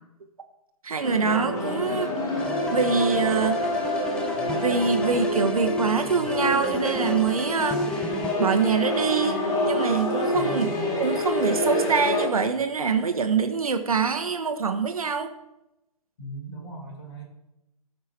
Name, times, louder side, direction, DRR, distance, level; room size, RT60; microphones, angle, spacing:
voice 1, 0.8-2.1 2.7-3.6 4.6-8.1 8.4-10.7 11.0-15.3, right 5 dB, 70° right, 7 dB, 1.3 m, -25 dB
sound 1, 1.0-12.3, left 1 dB, 20° left, 2.8 m, -27 dB
sound 2, 2.4-8.4, left 2 dB, 5° left, 0.5 m, -37 dB
voice 2, 10.3-10.9 16.2-17.2, right 2 dB, 45° left, -1 dB, 5.0 m, -37 dB
17.0 x 6.2 x 4.3 m, 0.90 s
figure-of-eight pair, 125°, 19 cm